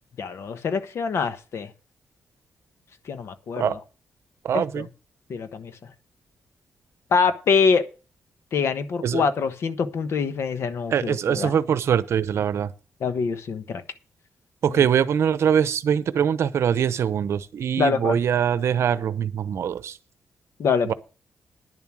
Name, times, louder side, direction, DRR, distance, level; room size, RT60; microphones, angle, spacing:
voice 1, 0.2-1.7 3.1-3.8 4.5-4.9 5.3-5.7 7.1-7.9 8.5-11.6 13.0-13.8 14.7-14.9 17.8-18.2 20.6-20.9, left 5 dB, 65° left, 1.2 m, -24 dB
voice 2, 4.4-4.9 9.0-9.2 10.9-12.7 14.6-19.9 20.9-21.0, right 8 dB, 70° right, 0.7 m, -23 dB
10.5 x 7.3 x 6.2 m
cardioid pair, 100°, 5 cm